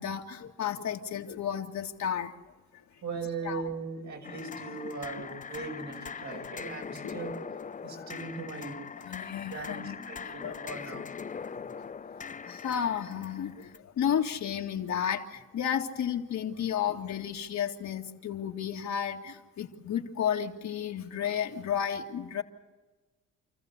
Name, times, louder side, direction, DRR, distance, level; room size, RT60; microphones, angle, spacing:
voice 1, 0.0-2.3 2.7-2.8 3.4-3.6 7.0-7.2 8.0-8.1 9.0-10.7 11.3-11.5 12.4-22.4, left 9 dB, 65° left, 3 dB, 2.1 m, -33 dB
voice 2, 3.0-7.3 7.8-8.8 9.5-11.3, right 4 dB, 70° right, 1 dB, 6.0 m, -39 dB
sound 1, 4.2-13.8, left 6 dB, 25° left, 0.7 m, -41 dB
28.5 x 14.5 x 8.1 m, 1.2 s
cardioid pair, 90°, 30 cm